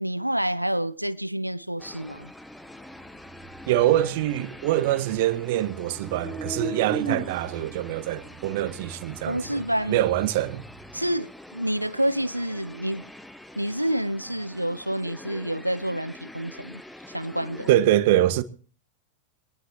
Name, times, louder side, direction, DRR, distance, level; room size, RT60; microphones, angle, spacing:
voice 1, 0.0-2.3 7.1-7.2 9.3-10.0 10.9-13.0 13.6-16.8 17.1-17.8, right 1 dB, 90° right, 0.9 m, -28 dB
sound 1, 1.8-17.7, left 1 dB, 5° left, 1.4 m, -45 dB
sound 2, 2.9-5.5 5.9-11.1, right 3 dB, 15° right, 2.7 m, -38 dB
voice 2, 3.7-9.4 9.9-10.6 17.7-18.4, right 13 dB, 50° right, 1.5 m, -24 dB
25.0 x 19.5 x 3.0 m
figure-of-eight pair, 90°, 0 cm